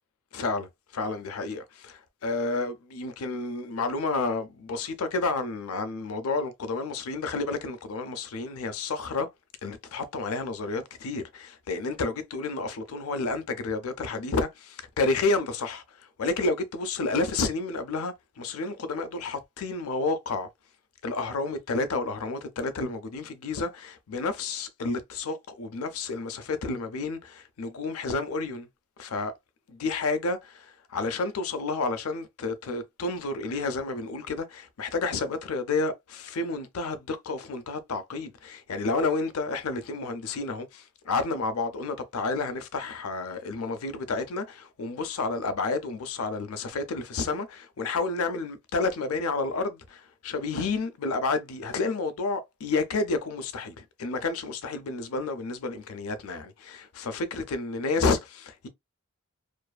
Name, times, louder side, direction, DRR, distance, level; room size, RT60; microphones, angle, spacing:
voice 1, 0.3-9.3 9.6-20.5 21.0-28.7 29.0-29.3 29.7-58.7, left 3 dB, 75° left, 0.5 m, -30 dB
2.5 x 2.4 x 2.2 m
head